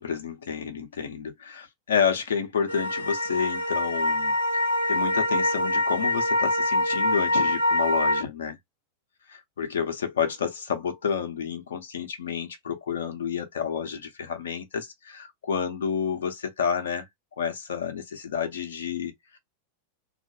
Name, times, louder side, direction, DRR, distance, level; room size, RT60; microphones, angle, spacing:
voice 1, 0.0-4.3 4.7-8.6 9.3-17.0 17.3-19.4, left 7 dB, 65° left, 0.5 m, -30 dB
sound 1, 2.7-8.2, left 1 dB, 85° right, 0.7 m, -25 dB
2.3 x 2.1 x 2.7 m
figure-of-eight pair, 90°, 0 cm